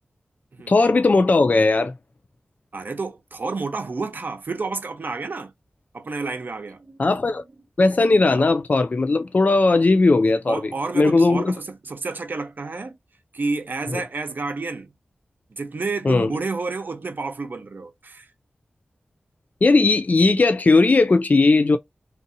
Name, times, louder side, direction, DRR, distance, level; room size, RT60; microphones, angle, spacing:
voice 1, 0.7-1.9 7.0-7.4 7.8-10.6 10.9-11.5 16.0-16.3 19.6-21.8, left 3 dB, 50° left, 0.4 m, -17 dB
voice 2, 2.7-5.5 5.9-7.1 10.5-13.0 13.3-14.9 15.5-18.3, right 3 dB, 65° right, 0.8 m, -30 dB
2.7 x 2.5 x 2.5 m
cardioid pair, 40°, 4 cm